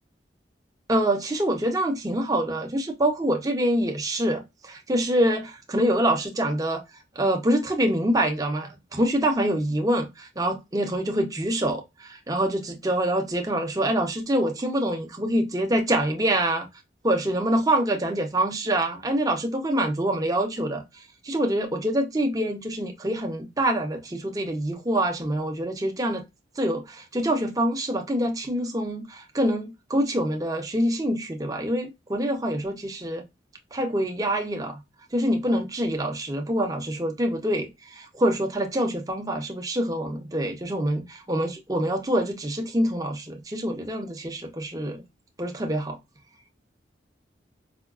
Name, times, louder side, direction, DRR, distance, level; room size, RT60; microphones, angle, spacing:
voice 1, 0.9-6.8 7.2-16.7 17.0-20.8 21.2-26.2 26.6-33.2 33.7-34.8 35.1-45.0 45.4-46.0, right 1 dB, 20° right, 0.6 m, -25 dB
4.9 x 2.3 x 2.3 m
head